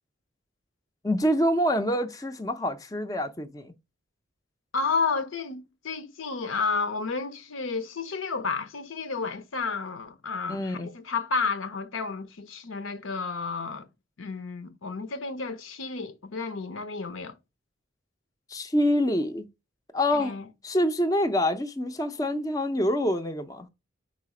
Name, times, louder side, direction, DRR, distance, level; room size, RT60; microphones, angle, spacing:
voice 1, 1.0-3.7 10.5-10.9 18.5-19.5 19.9-20.4 20.6-23.7, equal, 15° left, 0.5 m, -26 dB
voice 2, 4.7-13.9 14.2-17.4 20.1-20.5, left 4 dB, 80° left, 0.7 m, -31 dB
4.8 x 4.1 x 4.8 m
head